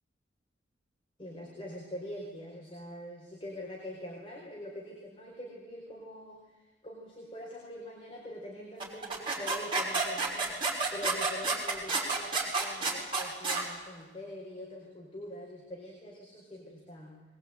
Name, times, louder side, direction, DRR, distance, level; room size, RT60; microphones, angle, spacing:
voice 1, 1.2-10.6 10.9-17.2, left 1 dB, 30° left, -2 dB, 4.9 m, -44 dB
sound 1, 8.8-13.6, right 3 dB, 25° right, 5.8 m, -30 dB
22.0 x 21.5 x 9.2 m, 1.2 s
head